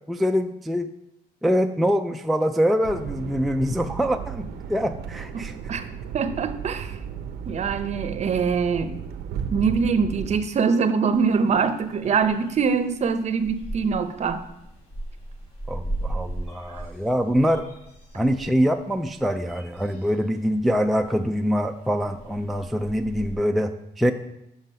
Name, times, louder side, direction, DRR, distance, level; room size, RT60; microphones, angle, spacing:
voice 1, 0.1-0.9 1.4-5.6 15.7-17.6 18.2-24.1, equal, ahead, 5 dB, 0.3 m, -24 dB
sound 1, 2.8-10.4, right 7 dB, 85° right, 0.6 m, -35 dB
voice 2, 5.3-5.8 6.1-7.0 7.5-9.0 9.5-14.4, right 5 dB, 45° right, 9 dB, 0.6 m, -23 dB
sound 2, 11.1-23.3, right 1 dB, 40° left, 3.1 m, -38 dB
7.4 x 5.0 x 5.3 m, 0.84 s
cardioid pair, 120°, 16 cm